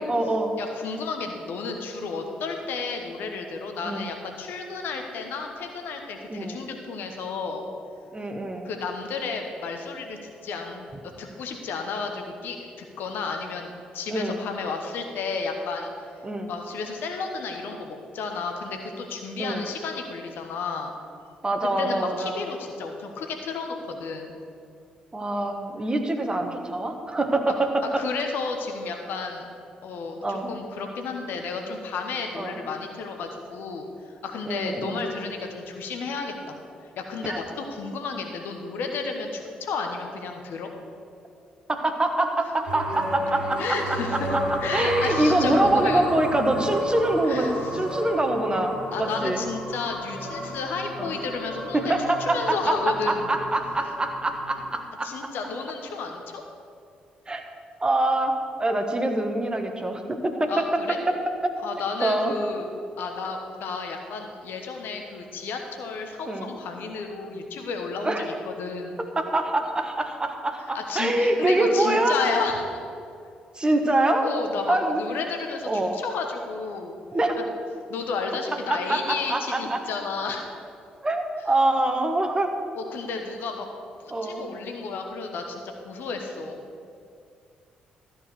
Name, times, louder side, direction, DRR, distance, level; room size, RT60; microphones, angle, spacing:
voice 1, 0.0-0.5 3.8-4.1 6.3-6.6 8.1-8.7 14.1-14.4 16.2-16.5 19.4-19.7 21.4-22.4 25.1-28.0 30.2-30.5 32.3-32.6 34.5-35.1 37.2-37.4 41.7-44.4 44.7-49.4 51.0-51.2 51.7-52.6 52.9-55.1 57.3-57.4 57.8-58.3 58.6-60.6 61.4-61.5 62.0-62.3 66.3-66.5 68.0-68.3 69.2-72.2 73.5-74.2 74.7-75.0 75.6-76.0 77.1-77.3 78.7-79.8 81.0-82.5 84.1-84.4, right 1 dB, 20° right, 5 dB, 1.3 m, -25 dB
voice 2, 0.6-7.7 8.6-10.9 11.2-15.9 16.5-20.9 21.8-24.4 27.5-27.6 28.0-29.5 29.8-36.6 36.9-40.7 43.6-46.0 47.2-47.7 48.9-53.2 55.0-56.4 60.5-61.0 61.6-62.7 63.0-69.0 70.7-72.6 74.2-77.0 77.3-77.4 77.9-80.5 82.7-83.7 84.0-86.6, left 4 dB, 60° left, 4 dB, 1.1 m, -32 dB
sound 1, 42.7-54.7, equal, 85° left, 2.2 m, -33 dB
13.5 x 4.7 x 7.7 m, 2.4 s
figure-of-eight pair, 40°, 4 cm